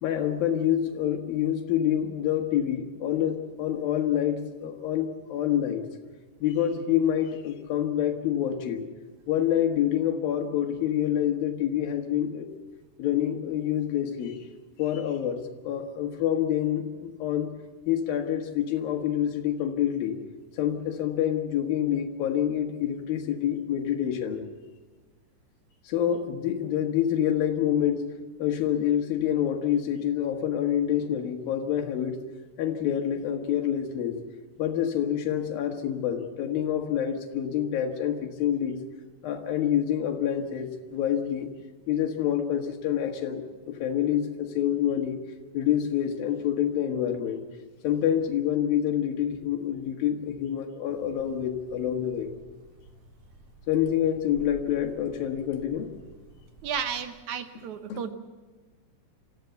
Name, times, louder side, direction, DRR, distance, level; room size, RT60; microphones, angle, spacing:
voice 1, 0.0-5.8 6.4-8.9 9.3-12.5 13.0-14.4 14.8-17.5 17.9-20.2 20.5-24.4 25.8-28.1 28.4-32.2 32.6-34.2 34.6-38.8 39.2-41.5 41.9-45.2 45.5-47.4 47.8-52.3 53.7-55.9 57.5-57.6 57.9-58.0, left 10 dB, 90° left, 4 dB, 3.5 m, -27 dB
sound 1, 50.9-57.0, right 1 dB, 85° right, 7.2 m, -52 dB
voice 2, 56.6-58.1, right 7 dB, 65° right, 9 dB, 2.1 m, -33 dB
27.0 x 15.0 x 7.1 m, 1.3 s
omnidirectional pair, 4.0 m